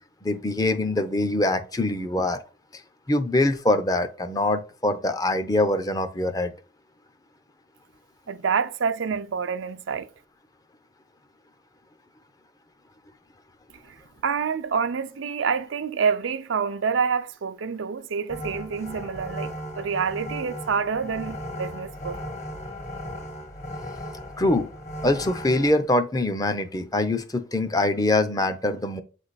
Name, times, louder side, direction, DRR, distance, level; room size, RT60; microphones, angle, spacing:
voice 1, 0.2-2.4 2.7-2.8 3.1-6.5 24.4-24.7 25.0-29.0, left 2 dB, 20° left, 0.5 m, -24 dB
voice 2, 8.3-10.1 14.2-22.2, right 6 dB, 85° right, 0.5 m, -27 dB
sound 1, 18.3-25.7, equal, 35° left, 1.0 m, -36 dB
7.9 x 3.3 x 4.0 m
head